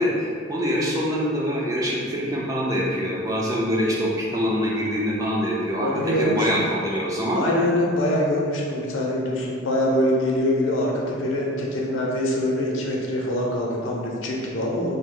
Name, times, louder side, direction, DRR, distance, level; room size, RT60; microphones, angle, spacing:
voice 1, 0.0-5.9 6.2-7.4, equal, 15° right, -4 dB, 0.4 m, -24 dB
voice 2, 5.8-6.7 7.3-14.9, left 1 dB, 85° left, -2 dB, 0.5 m, -24 dB
2.7 x 2.1 x 3.7 m, 2.2 s
head